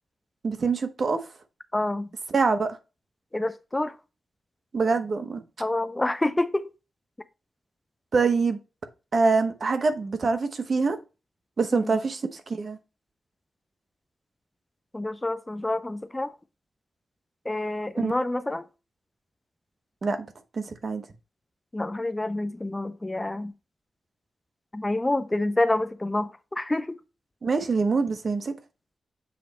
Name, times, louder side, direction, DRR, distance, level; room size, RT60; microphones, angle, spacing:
voice 1, 0.4-1.2 2.3-2.8 4.7-5.4 8.1-8.6 9.1-11.0 11.6-12.8 18.0-18.1 20.0-20.2 20.5-21.0 27.4-28.5, right 4 dB, 55° right, 1.0 m, -24 dB
voice 2, 1.7-2.1 3.3-3.9 5.6-6.7 11.7-11.9 14.9-16.3 17.5-18.6 21.7-23.5 24.7-27.0, left 2 dB, 20° left, 0.5 m, -27 dB
7.6 x 3.2 x 4.0 m
cardioid pair, 80°, 0 cm